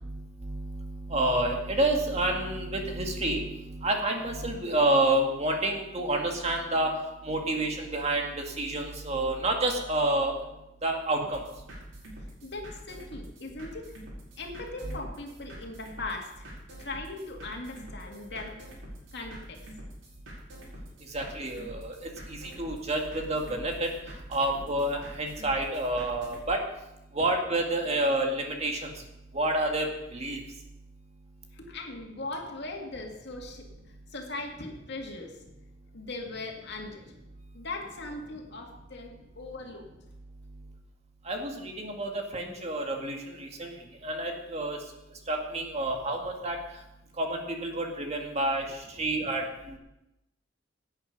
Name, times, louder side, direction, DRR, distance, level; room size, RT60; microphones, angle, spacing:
voice 1, 0.0-7.0 7.2-10.3 10.8-11.4 14.8-15.0 21.1-22.0 22.3-23.9 24.3-26.6 27.1-28.9 29.3-29.9 30.1-30.4 41.3-43.7 44.0-44.8 45.3-46.6 47.2-48.7 49.0-49.8, right 1 dB, 35° right, 2 dB, 2.0 m, -29 dB
sound 1, 11.2-26.5, equal, 90° right, 5.3 m, -46 dB
voice 2, 12.4-13.9 14.4-16.5 16.8-18.7 19.1-19.6 31.5-35.4 35.9-37.0 37.5-39.9 43.6-43.7 49.0-49.3, left 2 dB, 60° left, 1 dB, 2.4 m, -39 dB
17.0 x 9.0 x 5.3 m, 0.91 s
head